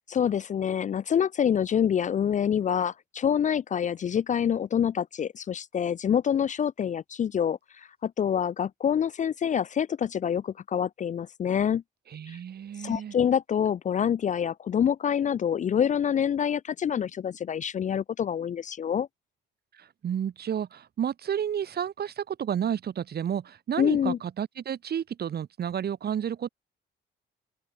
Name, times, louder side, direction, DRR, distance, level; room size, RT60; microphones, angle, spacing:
voice 1, 0.1-7.6 8.0-11.8 12.3-12.4 12.8-19.1 23.8-24.2, left 8 dB, 40° left, 0.4 m, -26 dB
voice 2, 12.1-13.1 20.0-26.5, right 9 dB, 55° right, 1.5 m, -31 dB
cardioid pair, 90°, 20 cm